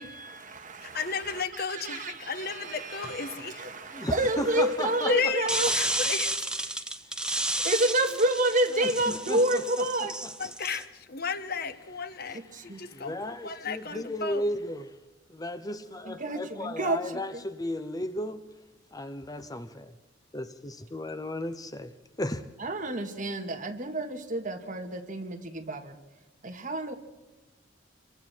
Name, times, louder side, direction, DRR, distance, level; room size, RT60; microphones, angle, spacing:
voice 1, 0.0-5.7 7.6-10.3 12.3-12.8 13.9-14.0 16.0-17.4 22.6-26.0 26.4-26.9, right 1 dB, 45° right, 2.2 m, -29 dB
voice 2, 0.8-3.7 5.1-6.4 10.4-14.4, left 5 dB, 55° left, 1.3 m, -33 dB
voice 3, 3.9-5.3 7.2-7.6 8.8-9.4 12.2-12.4 12.6-14.9 15.3-18.5 18.9-19.9 20.3-22.4, left 1 dB, 20° left, 0.9 m, -35 dB
sound 1, 5.5-10.8, right 1 dB, 5° right, 1.2 m, -31 dB
28.0 x 23.5 x 4.6 m
head